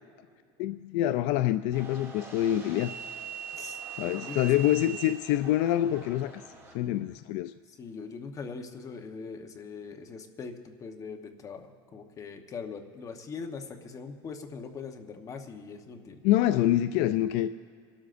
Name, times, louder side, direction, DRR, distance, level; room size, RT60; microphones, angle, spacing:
voice 1, 0.6-2.9 4.0-6.4 6.7-7.5 16.2-17.5, left 13 dB, 65° left, 0.4 m, -26 dB
sound 1, 1.7-6.7, right 7 dB, 20° right, 2.4 m, -42 dB
voice 2, 4.2-5.0 7.7-16.2, left 5 dB, 25° left, 1.0 m, -41 dB
27.0 x 13.0 x 2.6 m
cardioid pair, 145°, 12 cm